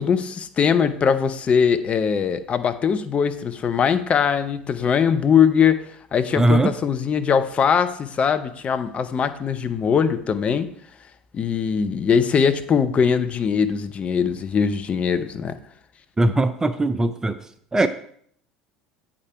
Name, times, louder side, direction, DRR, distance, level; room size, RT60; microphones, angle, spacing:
voice 1, 0.0-5.8 6.1-10.7 11.3-15.6, left 7 dB, 30° left, 9 dB, 0.6 m, -21 dB
voice 2, 6.4-6.7 16.2-17.4 17.7-17.9, right 2 dB, 15° right, 10 dB, 0.4 m, -19 dB
8.5 x 5.0 x 4.6 m, 0.63 s
figure-of-eight pair, 70°, 4 cm